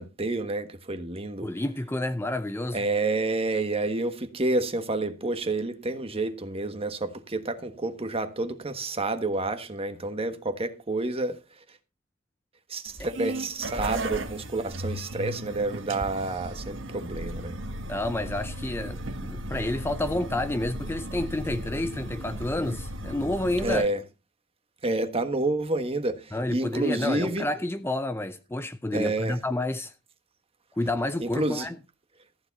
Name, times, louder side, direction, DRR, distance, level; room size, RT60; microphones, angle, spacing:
voice 1, 0.0-1.5 2.7-11.4 12.7-17.6 23.6-24.0 24.8-26.2 26.5-27.5 28.9-29.4 31.2-31.7, right 2 dB, 30° right, 1.4 m, -29 dB
voice 2, 1.4-2.9 17.9-23.9 26.3-29.9 30.8-31.8, left 1 dB, 10° left, 0.6 m, -29 dB
sound 1, 12.9-23.7, right 1 dB, 80° right, 1.6 m, -36 dB
14.5 x 9.9 x 4.1 m
head